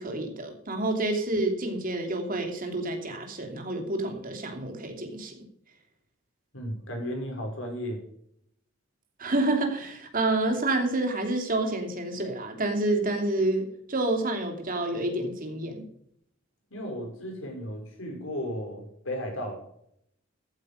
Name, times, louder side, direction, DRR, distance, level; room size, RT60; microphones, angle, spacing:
voice 1, 0.0-5.4 9.2-15.8, right 2 dB, 45° right, 4 dB, 3.0 m, -28 dB
voice 2, 6.5-8.0 16.7-19.6, equal, 70° left, 1 dB, 5.9 m, -34 dB
14.5 x 8.9 x 5.3 m, 0.69 s
head